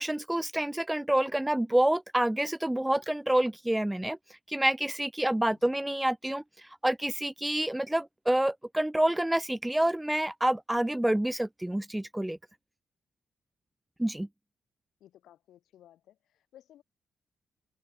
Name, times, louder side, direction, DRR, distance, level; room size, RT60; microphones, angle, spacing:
voice 1, 0.0-4.2 4.5-12.4 14.0-14.3, right 1 dB, 5° right, 0.5 m, -28 dB
voice 2, 15.0-16.8, left 12 dB, 90° left, 5.6 m, -57 dB
open air
cardioid pair, 125°, 0 cm